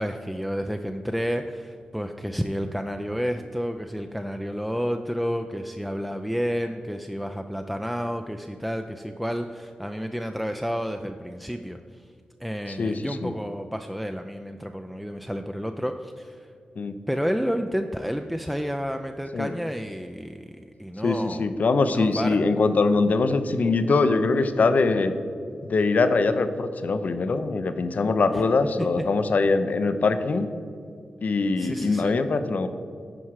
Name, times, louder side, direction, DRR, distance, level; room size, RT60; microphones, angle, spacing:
voice 1, 0.0-12.0 12.4-16.5 17.1-21.5 21.8-22.4 28.3-28.4 31.6-32.2, equal, ahead, 6 dB, 0.4 m, -30 dB
voice 2, 12.7-13.3 16.8-17.0 19.3-19.5 21.0-25.1 25.6-30.5 31.2-32.7, left 3 dB, 65° left, 10 dB, 0.6 m, -23 dB
9.8 x 4.7 x 4.7 m, 2.3 s
cardioid pair, 60°, 3 cm